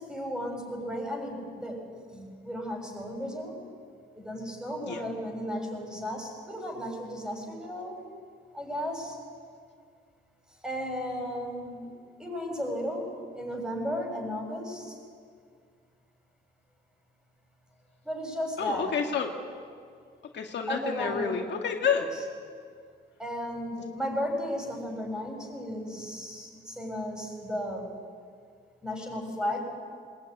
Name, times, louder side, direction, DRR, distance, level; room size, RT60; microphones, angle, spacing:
voice 1, 0.0-1.8 2.1-3.6 4.1-8.1 8.5-9.2 10.6-11.9 12.2-15.0 18.0-18.9 20.7-21.5 22.0-22.1 23.2-27.9 28.8-29.6, equal, 5° right, 1 dB, 6.9 m, -34 dB
voice 2, 18.6-19.3 20.3-22.1, left 6 dB, 60° left, 2 dB, 2.0 m, -29 dB
20.5 x 19.5 x 9.8 m, 2.1 s
cardioid pair, 90°, 20 cm